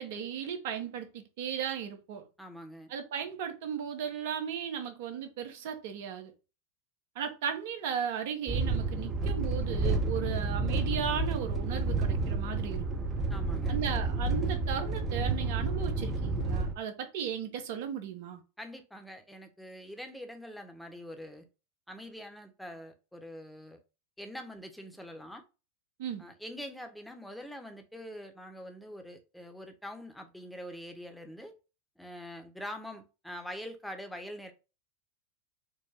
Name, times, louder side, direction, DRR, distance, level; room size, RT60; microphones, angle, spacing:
voice 1, 0.0-2.2 2.9-6.3 7.1-12.8 13.7-18.4 26.0-26.2, right 8 dB, 65° right, 1.0 m, -36 dB
voice 2, 2.4-2.9 13.3-13.8 18.6-21.5 21.9-23.8 24.2-25.4 26.2-31.5 32.0-34.5, equal, ahead, 0.9 m, -44 dB
sound 1, 8.5-16.7, right 3 dB, 30° right, 0.8 m, -30 dB
4.6 x 2.1 x 3.4 m
hypercardioid pair, 95°, 0 cm